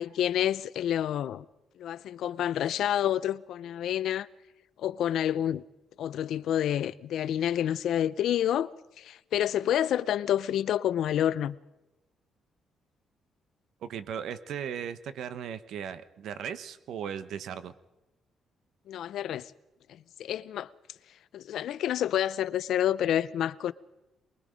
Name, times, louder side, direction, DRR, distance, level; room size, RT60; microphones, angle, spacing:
voice 1, 0.0-1.5 1.8-4.3 4.8-5.6 6.0-8.7 9.0-11.6 18.9-19.5 20.2-20.7 21.3-23.7, left 11 dB, 75° left, 0.6 m, -28 dB
voice 2, 13.8-17.7, right 8 dB, 75° right, 1.0 m, -37 dB
24.0 x 21.5 x 5.2 m
cardioid pair, 90°, 0 cm